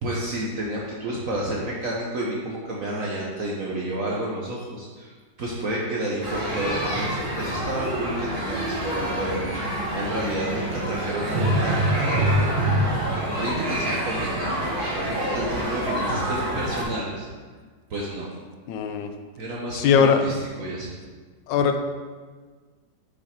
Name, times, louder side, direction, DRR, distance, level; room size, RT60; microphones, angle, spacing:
voice 1, 0.0-5.1 5.4-12.9 13.3-17.3 17.9-18.3 19.4-20.9, right 1 dB, 55° right, -3 dB, 1.2 m, -30 dB
sound 1, 6.2-16.8, right 1 dB, 25° right, 2.2 m, -26 dB
voice 2, 18.7-19.1 19.7-20.2 21.5-21.8, left 7 dB, 85° left, 7 dB, 1.3 m, -20 dB
6.3 x 5.8 x 5.1 m, 1.5 s
omnidirectional pair, 1.9 m